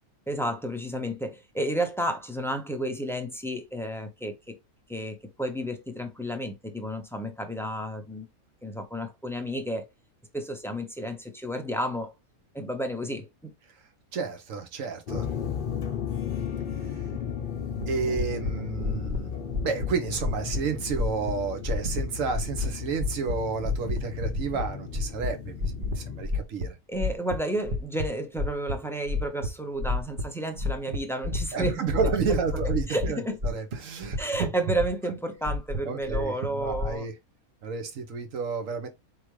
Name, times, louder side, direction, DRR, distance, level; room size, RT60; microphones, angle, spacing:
voice 1, 0.3-4.6 4.9-8.3 8.6-9.9 10.3-12.1 12.5-13.5 26.9-31.8 32.9-33.4 34.2-37.1, right 1 dB, 5° left, 0.3 m, -31 dB
voice 2, 14.1-15.3 16.7-17.0 17.9-19.3 19.6-26.8 31.5-34.5 35.8-37.1 37.6-38.9, right 5 dB, 65° right, 1.3 m, -31 dB
sound 1, 15.1-26.3, left 8 dB, 45° left, 0.9 m, -35 dB
sound 2, 17.8-17.9 18.2-18.5 18.8-19.2 19.5-19.9 20.2-20.6 20.9-21.3 21.6-22.0 22.3-22.7 23.0-23.3 23.6-24.7 24.9-25.3 25.6-26.0 26.2-26.7 27.0-28.1 28.4-28.7 29.1-29.5 29.8-30.2 30.5-31.0 31.2-33.1 33.4-33.8 34.0-35.1 35.5-36.9, left 2 dB, 40° right, 1.0 m, -29 dB
4.7 x 3.6 x 3.1 m
omnidirectional pair, 1.5 m